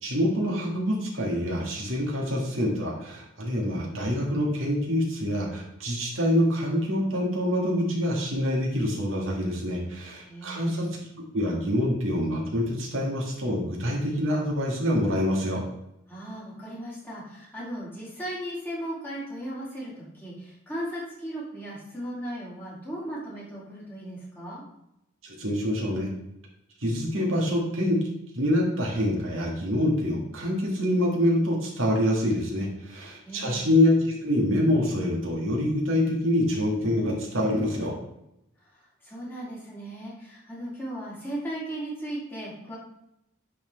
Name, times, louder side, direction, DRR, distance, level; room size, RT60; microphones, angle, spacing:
voice 1, 0.0-10.9 11.3-15.6 25.2-26.1 26.8-28.0 28.3-37.9, left 1 dB, 80° right, -1 dB, 1.9 m, -26 dB
voice 2, 10.3-10.8 16.1-24.6 33.2-33.7 38.7-42.7, right 1 dB, 10° left, -7 dB, 2.8 m, -37 dB
10.0 x 4.4 x 3.5 m, 0.83 s
head